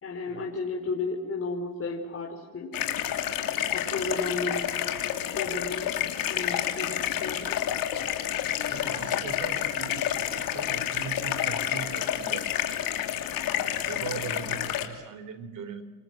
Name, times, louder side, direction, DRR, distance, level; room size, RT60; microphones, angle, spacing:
voice 1, 0.0-2.7 3.7-5.9 6.3-7.7, left 3 dB, 35° left, 1 dB, 4.4 m, -34 dB
sound 1, 2.7-14.9, left 11 dB, 65° left, 3.3 m, -29 dB
voice 2, 8.7-12.7 13.9-15.8, right 6 dB, 55° right, 12 dB, 3.7 m, -40 dB
28.0 x 24.0 x 7.5 m, 1.3 s
supercardioid pair, 80°, 36 cm